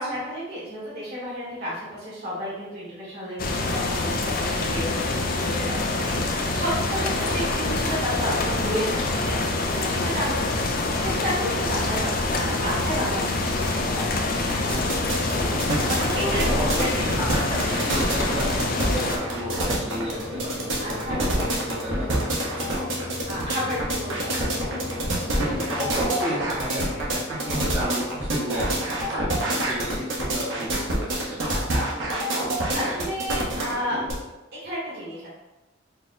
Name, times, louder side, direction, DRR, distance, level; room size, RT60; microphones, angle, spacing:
voice 1, 0.0-10.4 11.0-14.3 15.9-17.4 20.8-21.4 23.2-24.3 32.7-34.0 34.6-35.3, equal, 55° right, -9 dB, 1.4 m, -31 dB
sound 1, 3.4-19.2, left 2 dB, 45° left, 0.5 m, -26 dB
Mechanisms, 7.0-25.9, left 2 dB, 65° left, 1.4 m, -36 dB
sound 2, 14.5-34.1, right 1 dB, 70° right, 0.9 m, -27 dB
voice 2, 15.3-15.7 16.2-22.7 25.4-31.7, right 1 dB, 20° right, -7 dB, 0.7 m, -33 dB
4.4 x 2.2 x 3.9 m, 1.1 s
head